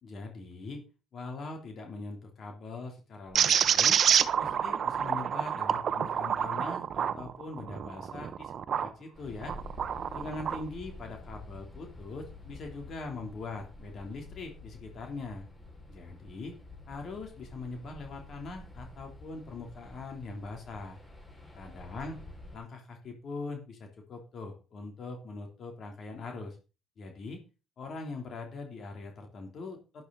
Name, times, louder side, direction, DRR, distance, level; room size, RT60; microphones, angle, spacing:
voice 1, 0.0-0.8 1.1-4.0 4.4-9.6 10.1-15.5 15.9-16.5 16.9-21.0 21.5-22.2 22.5-26.6 27.0-27.4 27.8-30.0, left 3 dB, 45° left, 3 dB, 3.5 m, -42 dB
sound 1, 3.4-8.9 9.4-10.6, right 8 dB, 50° right, 0.9 m, -28 dB
sound 2, 9.1-22.6, left 2 dB, 15° left, 5.6 m, -49 dB
12.0 x 11.0 x 4.1 m, 0.32 s
cardioid pair, 120°, 0 cm